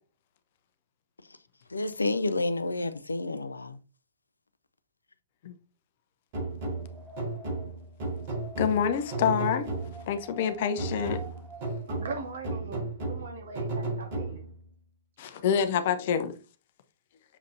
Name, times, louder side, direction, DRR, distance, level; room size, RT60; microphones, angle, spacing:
voice 1, 1.7-3.8 15.8-16.1, left 2 dB, 80° left, 0.5 m, -30 dB
sound 1, 6.3-10.2 10.8-14.7, right 2 dB, 45° right, 3.6 m, -34 dB
Wind, 6.5-12.5, right 2 dB, 5° right, 1.1 m, -48 dB
voice 2, 8.6-9.7 10.1-11.2 15.2-16.3, left 7 dB, 50° left, 0.9 m, -27 dB
voice 3, 11.9-14.5, right 3 dB, 60° right, 1.9 m, -40 dB
7.2 x 5.1 x 2.7 m
figure-of-eight pair, 110°, 0 cm